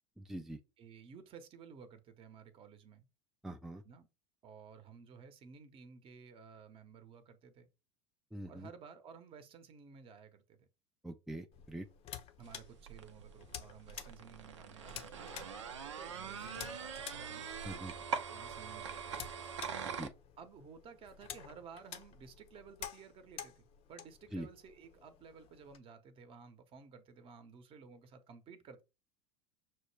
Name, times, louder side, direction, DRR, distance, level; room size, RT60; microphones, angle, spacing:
voice 1, 0.2-0.6 3.4-3.8 8.3-8.7 11.0-11.9 17.6-17.9 19.8-20.1 24.3-24.5, right 1 dB, 5° right, 0.4 m, -43 dB
voice 2, 0.8-3.1 3.8-4.1 4.4-7.7 8.4-10.7 12.4-17.5 18.1-19.5 20.4-28.8, right 6 dB, 35° right, 0.9 m, -55 dB
sound 1, 11.5-25.8, left 9 dB, 45° left, 0.7 m, -51 dB
sound 2, 12.4-20.1, right 6 dB, 85° right, 0.6 m, -43 dB
6.0 x 2.2 x 3.2 m
hypercardioid pair, 85°, 15 cm